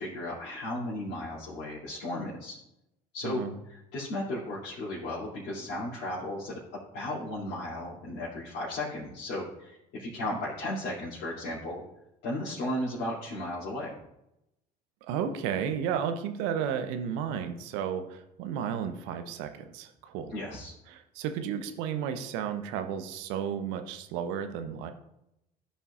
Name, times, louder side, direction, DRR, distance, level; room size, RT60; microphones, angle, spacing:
voice 1, 0.0-2.6 3.1-6.6 6.9-11.8 12.2-14.0 20.3-20.7, left 1 dB, 55° left, -8 dB, 2.8 m, -35 dB
voice 2, 3.2-3.5 15.1-20.3 20.9-24.9, right 8 dB, 70° right, 8 dB, 0.9 m, -33 dB
14.5 x 5.5 x 2.5 m, 0.84 s
hypercardioid pair, 65°, 20 cm